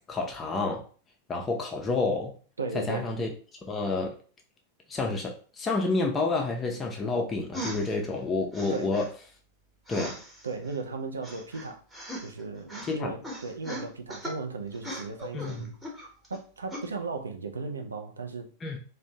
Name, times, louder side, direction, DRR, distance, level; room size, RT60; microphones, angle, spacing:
voice 1, 0.1-0.8 1.3-2.3 2.7-3.3 3.7-4.1 4.9-9.1 9.9-10.2 12.8-13.1 15.3-15.7 18.6-18.8, left 3 dB, 20° left, 0.4 m, -29 dB
voice 2, 2.6-3.1 8.7-9.0 10.4-11.8 12.2-15.8 16.3-18.5, right 4 dB, 75° right, 0.4 m, -36 dB
sound 1, 7.5-7.9 8.5-9.1 9.9-10.8 11.2-12.4 12.7-12.9 13.2-14.4 14.7-16.4 16.7-16.9, equal, 5° right, 0.8 m, -39 dB
2.5 x 2.0 x 2.7 m
figure-of-eight pair, 90°, 0 cm